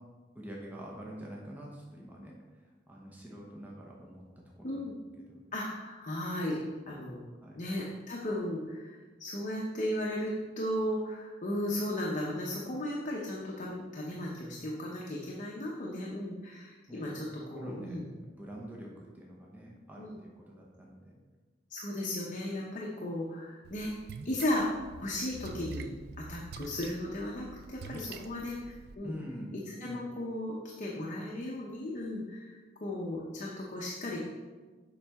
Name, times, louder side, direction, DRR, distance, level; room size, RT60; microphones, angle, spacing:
voice 1, 0.3-4.9 5.3-5.4 7.4-7.6 16.9-17.1 17.4-18.0 18.4-21.1 29.0-29.5 29.8-30.0, equal, 10° right, -3 dB, 0.8 m, -46 dB
voice 2, 5.5-6.6 6.9-7.2 7.6-18.1 20.0-20.2 21.7-23.9 24.2-24.7 25.0-25.9 26.2-29.1 29.7-34.2, left 1 dB, 40° left, -3 dB, 0.8 m, -35 dB
Splash splatter, 23.6-28.9, right 4 dB, 60° right, 0.4 m, -46 dB
7.1 x 5.5 x 3.5 m, 1.3 s
head